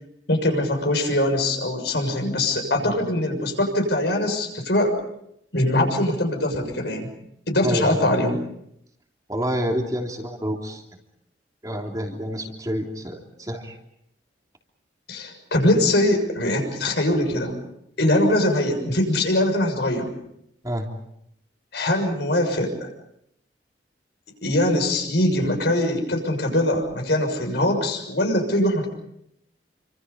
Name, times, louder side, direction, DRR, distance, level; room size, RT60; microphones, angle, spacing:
voice 1, 0.3-4.9 5.5-7.1 7.5-8.4 15.1-17.6 18.0-20.1 21.7-22.9 24.4-28.9, left 1 dB, 65° left, 4 dB, 6.6 m, -22 dB
voice 2, 7.6-7.9 9.3-10.8 11.6-13.8 20.6-20.9, equal, 20° right, 1 dB, 3.2 m, -28 dB
28.5 x 25.5 x 5.4 m, 0.76 s
head